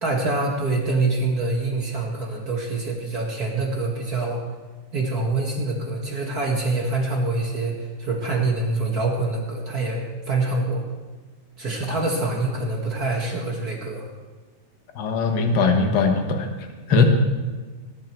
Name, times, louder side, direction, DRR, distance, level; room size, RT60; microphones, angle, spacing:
voice 1, 0.0-4.4 4.9-10.8 11.6-14.0 16.6-17.0, right 3 dB, 35° right, -2 dB, 1.6 m, -25 dB
voice 2, 15.0-16.4 16.9-17.0, left 4 dB, 70° left, 4 dB, 1.0 m, -20 dB
19.0 x 10.5 x 4.6 m, 1.4 s
omnidirectional pair, 4.0 m